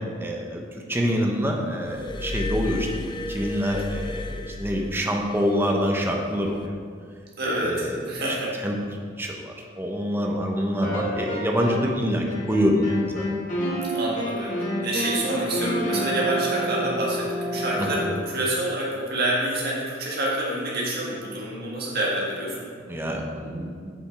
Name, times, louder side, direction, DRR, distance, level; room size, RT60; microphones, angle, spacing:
voice 1, 0.2-0.6 0.9-6.8 7.5-8.0 8.6-8.8 9.2-13.3 17.8-18.0 22.9-23.9, equal, 10° right, 0 dB, 0.7 m, -26 dB
Glass, 1.9-5.5 6.4-6.7, left 2 dB, 25° left, 0.4 m, -33 dB
voice 2, 7.4-8.5 13.9-14.5 14.8-22.7, right 1 dB, 55° right, -4 dB, 1.7 m, -27 dB
sound 1, 10.8-12.0 12.3-18.2, equal, 45° left, 1.7 m, -29 dB
6.9 x 5.1 x 4.7 m, 2.1 s
head